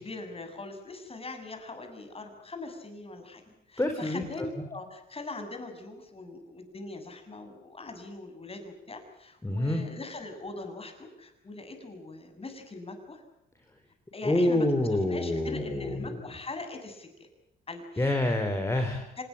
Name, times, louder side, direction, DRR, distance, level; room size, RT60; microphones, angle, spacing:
voice 1, 0.0-3.4 3.7-13.2 14.1-14.7 15.1-17.3 17.7-18.2 19.2-19.3, left 2 dB, 30° left, 6 dB, 7.3 m, -41 dB
voice 2, 3.8-4.2 9.4-9.8 14.2-16.2 18.0-19.1, left 1 dB, 15° left, 4 dB, 4.1 m, -27 dB
25.5 x 21.0 x 8.7 m, 0.83 s
cardioid pair, 90°, 20 cm